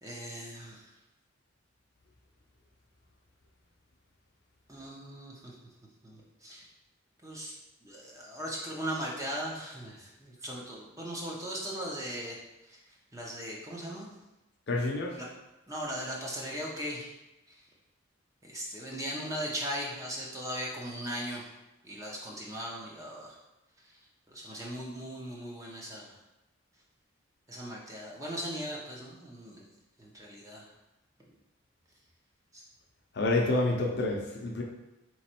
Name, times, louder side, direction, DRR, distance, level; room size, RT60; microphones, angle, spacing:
voice 1, 0.0-0.8 4.7-5.5 6.0-6.7 7.2-7.5 7.8-12.3 13.1-14.1 15.2-15.3 15.7-17.1 18.4-21.5 21.8-23.4 24.3-26.1 27.5-29.7 30.0-30.6 32.5-32.6, equal, 15° right, -3 dB, 0.6 m, -38 dB
voice 2, 14.7-15.2 33.1-34.6, left 2 dB, 55° left, 0 dB, 0.6 m, -28 dB
3.4 x 3.1 x 4.3 m, 0.97 s
head